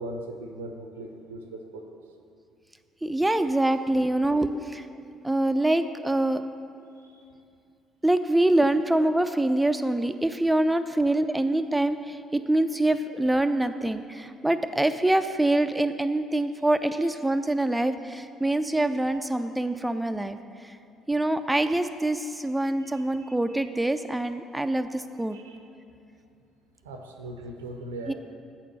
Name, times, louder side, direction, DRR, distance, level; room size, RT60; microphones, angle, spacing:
voice 1, 0.0-1.8 4.5-4.6 7.0-7.1 23.2-23.3 25.3-25.6 26.8-28.1, right 1 dB, 85° right, 4 dB, 0.6 m, -39 dB
voice 2, 3.0-4.9 5.2-6.4 8.0-20.8 21.1-25.4 28.1-28.2, right 1 dB, 10° right, 8 dB, 0.4 m, -25 dB
7.4 x 4.4 x 6.4 m, 2.5 s
figure-of-eight pair, 50°, 0 cm